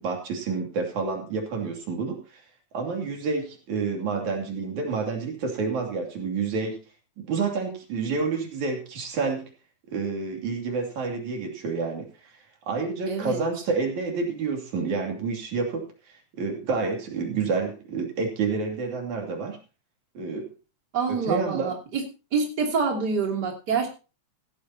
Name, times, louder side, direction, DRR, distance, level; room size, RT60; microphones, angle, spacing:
voice 1, 0.0-2.4 2.7-6.8 7.3-9.5 9.9-12.4 12.7-19.6 20.2-20.5 21.3-21.7, right 4 dB, 85° right, 2 dB, 4.1 m, -29 dB
voice 2, 13.1-13.4 20.9-22.0 22.3-23.9, right 5 dB, 35° right, 1 dB, 3.3 m, -26 dB
16.5 x 14.0 x 2.9 m, 0.33 s
omnidirectional pair, 3.3 m